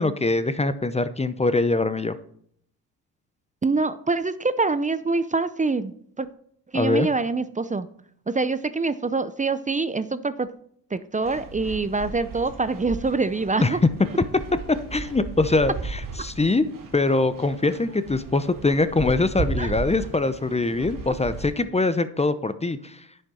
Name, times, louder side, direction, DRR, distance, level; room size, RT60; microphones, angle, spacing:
voice 1, 0.0-2.1 6.7-7.1 13.6-13.8 14.7-16.7 16.9-23.0, left 3 dB, 15° left, 13 dB, 0.8 m, -23 dB
voice 2, 3.6-6.3 6.7-7.9 8.3-10.5 10.9-13.8 19.6-19.7, right 3 dB, 20° right, 14 dB, 0.6 m, -25 dB
sound 1, 11.2-21.5, right 3 dB, 55° right, 2.4 m, -35 dB
10.0 x 6.6 x 4.3 m, 0.64 s
supercardioid pair, 65°, 39 cm